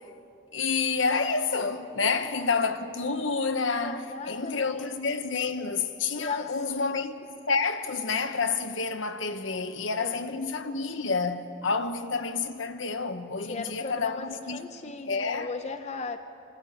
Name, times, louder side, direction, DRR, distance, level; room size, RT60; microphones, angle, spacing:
voice 1, 0.5-7.2 7.5-15.5, left 4 dB, 75° left, 1.1 m, -29 dB
voice 2, 2.0-2.5 3.8-4.9 6.2-7.0 10.0-10.1 13.4-16.2, left 4 dB, 35° left, 0.7 m, -37 dB
26.0 x 13.5 x 8.7 m
head